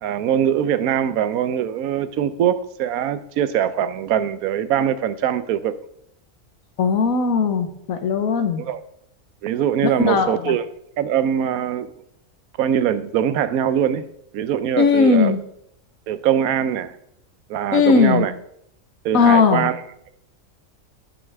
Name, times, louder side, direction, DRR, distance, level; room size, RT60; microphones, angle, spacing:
voice 1, 0.0-5.8 8.6-8.8 9.4-10.6 11.0-11.9 12.6-14.1 14.3-15.3 16.1-16.9 17.5-18.3 19.0-19.8, right 9 dB, 85° right, 1.1 m, -22 dB
voice 2, 6.8-8.6 9.8-10.5 14.8-15.4 17.7-18.2 19.1-19.7, left 5 dB, 75° left, 1.4 m, -18 dB
10.0 x 8.8 x 3.5 m
omnidirectional pair, 1.5 m